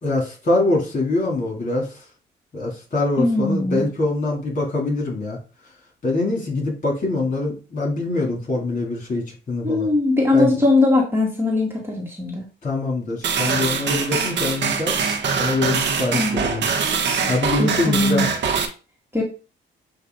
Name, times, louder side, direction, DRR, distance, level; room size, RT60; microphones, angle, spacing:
voice 1, 0.0-1.9 2.5-5.4 6.0-9.9 10.3-10.5 12.6-14.9 15.4-16.7 17.3-18.2, left 2 dB, 40° left, -2 dB, 3.4 m, -24 dB
voice 2, 3.2-3.9 9.6-12.4 16.1-16.5 17.6-18.3 19.1-19.2, left 2 dB, 10° right, -2 dB, 2.0 m, -20 dB
sound 1, 13.2-18.7, right 6 dB, 65° right, 1.2 m, -23 dB
7.8 x 3.0 x 4.0 m, 0.34 s
cardioid pair, 90°, 20 cm